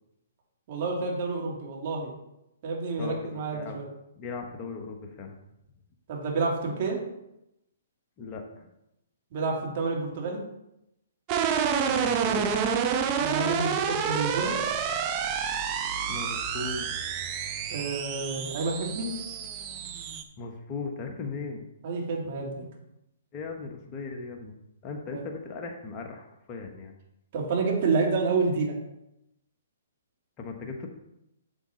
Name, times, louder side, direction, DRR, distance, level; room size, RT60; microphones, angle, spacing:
voice 1, 0.7-2.1 2.6-3.9 6.1-7.0 9.3-10.4 13.2-14.5 17.7-19.1 21.8-22.7 25.1-25.2 27.3-28.7, right 4 dB, 45° right, -1 dB, 2.8 m, -29 dB
voice 2, 3.0-3.8 4.2-5.4 8.2-8.7 11.8-12.6 16.1-16.9 20.4-21.6 23.3-24.5 24.8-26.9 30.4-30.9, left 4 dB, 30° left, 3 dB, 1.3 m, -38 dB
sound 1, 11.3-20.2, right 7 dB, 30° right, 0.9 m, -29 dB
7.9 x 7.5 x 4.0 m, 0.86 s
figure-of-eight pair, 125°, 0 cm